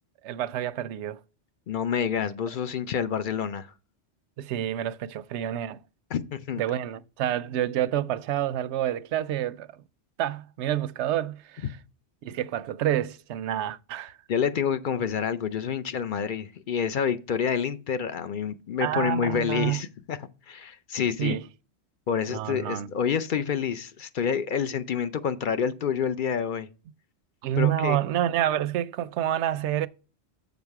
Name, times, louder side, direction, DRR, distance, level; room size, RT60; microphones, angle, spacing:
voice 1, 0.2-1.2 4.4-5.8 6.6-9.7 10.2-11.8 12.2-14.2 18.8-19.8 21.2-21.4 22.3-22.9 27.4-29.9, right 11 dB, 80° right, 0.9 m, -28 dB
voice 2, 1.7-3.7 6.1-6.6 14.3-20.2 20.5-21.4 22.1-26.7 27.6-28.0, left 7 dB, 55° left, 0.7 m, -28 dB
7.1 x 5.4 x 4.6 m
omnidirectional pair, 1.1 m